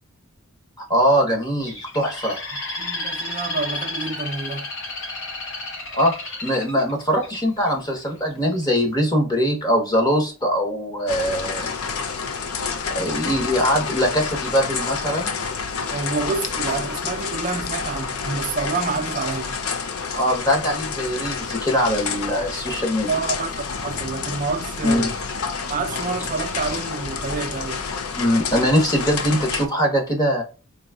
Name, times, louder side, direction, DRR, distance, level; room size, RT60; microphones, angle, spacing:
voice 1, 0.8-2.4 5.9-6.1 6.4-11.7 12.9-15.3 20.1-23.2 24.8-25.1 28.1-30.4, equal, 20° left, 1.1 m, -22 dB
Bird, 1.6-7.7 8.2-8.6, left 2 dB, 60° left, 1.4 m, -32 dB
voice 2, 2.8-4.7 15.9-19.6 23.1-25.1 25.7-27.9, right 4 dB, 40° right, 0.5 m, -28 dB
sound 1, 11.1-29.7, left 5 dB, 80° left, 0.5 m, -29 dB
3.9 x 2.8 x 2.3 m
head